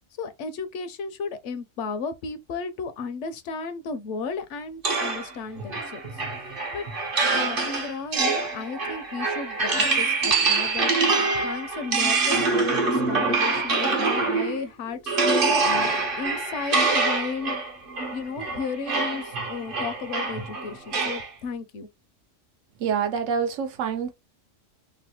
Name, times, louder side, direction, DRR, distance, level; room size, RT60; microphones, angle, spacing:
voice 1, 0.2-6.0 6.7-6.8 7.3-10.9 11.3-17.6 18.1-21.9, left 5 dB, 75° left, 0.9 m, -34 dB
sound 1, 4.8-14.6 15.1-21.3, right 3 dB, 50° right, 0.9 m, -25 dB
voice 2, 22.8-24.1, right 7 dB, 85° right, 1.0 m, -26 dB
3.1 x 2.1 x 2.8 m
omnidirectional pair, 1.3 m